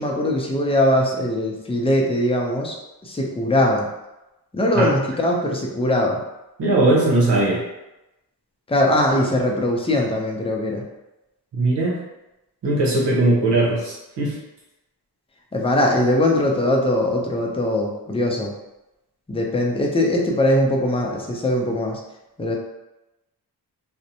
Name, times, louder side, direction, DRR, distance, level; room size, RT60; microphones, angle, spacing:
voice 1, 0.0-2.8 3.0-3.9 4.5-6.2 8.7-10.8 15.5-18.5 19.3-22.0 22.4-22.5, left 1 dB, 15° left, 0 dB, 0.4 m, -21 dB
voice 2, 6.6-7.6 11.5-12.0 12.6-14.4, right 2 dB, 85° right, -4 dB, 0.9 m, -19 dB
2.6 x 2.1 x 2.8 m, 0.96 s
wide cardioid pair, 85°, 41 cm